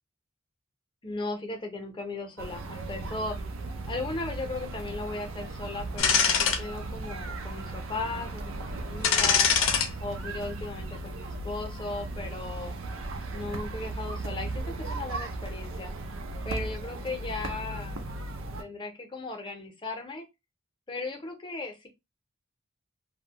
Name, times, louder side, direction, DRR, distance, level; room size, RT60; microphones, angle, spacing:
voice 1, 1.0-3.4 3.9-9.5 10.0-12.8 13.3-15.9 16.4-18.0 18.6-20.3 20.9-21.9, left 3 dB, 25° left, 4 dB, 0.6 m, -37 dB
sound 1, 2.4-18.6, right 2 dB, 90° right, 0.5 m, -37 dB
sound 2, 6.0-6.6 7.1-7.2 9.0-9.9 10.2-10.4, left 6 dB, 90° left, 0.5 m, -23 dB
2.5 x 2.1 x 2.7 m, 0.22 s
head